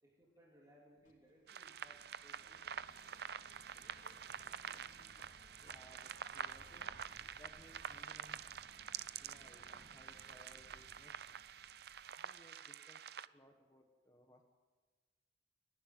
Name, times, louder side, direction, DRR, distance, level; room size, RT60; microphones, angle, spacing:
voice 1, 0.0-3.0, equal, 20° right, -4 dB, 3.1 m, -66 dB
Bird, 1.0-12.5, left 1 dB, 50° left, 3.2 m, -64 dB
sound 1, 1.5-13.3, right 8 dB, 60° right, 0.5 m, -48 dB
voice 2, 5.6-6.9 7.4-8.5 9.2-11.4 12.1-14.4, left 1 dB, 20° left, 3 dB, 1.4 m, -63 dB
29.0 x 11.0 x 9.6 m, 1.4 s
head